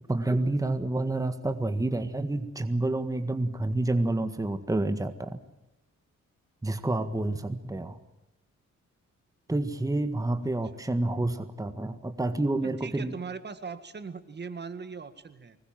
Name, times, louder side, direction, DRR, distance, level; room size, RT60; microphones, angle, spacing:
voice 1, 0.1-5.4 6.6-8.0 9.5-13.1, right 2 dB, 10° right, 9 dB, 1.7 m, -29 dB
voice 2, 12.6-15.6, right 5 dB, 35° right, 11 dB, 1.8 m, -40 dB
24.5 x 21.0 x 7.5 m, 0.95 s
cardioid pair, 110°, 30 cm